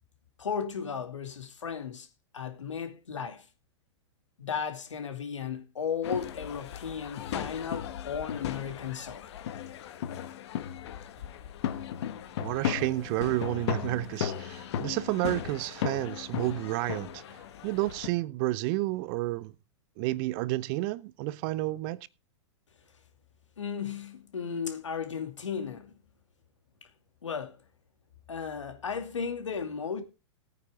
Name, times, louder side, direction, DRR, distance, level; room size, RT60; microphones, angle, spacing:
voice 1, 0.4-2.1 2.3-3.4 4.4-9.3 23.6-25.9 27.2-27.6 28.3-30.0, left 6 dB, 85° left, 2.4 m, -35 dB
sound 1, 6.0-18.1, left 9 dB, 65° left, 1.6 m, -36 dB
voice 2, 12.4-17.2 17.6-19.5 20.0-22.1, right 18 dB, 50° right, 0.8 m, -30 dB
18.0 x 9.4 x 3.5 m
hypercardioid pair, 105°, 15 cm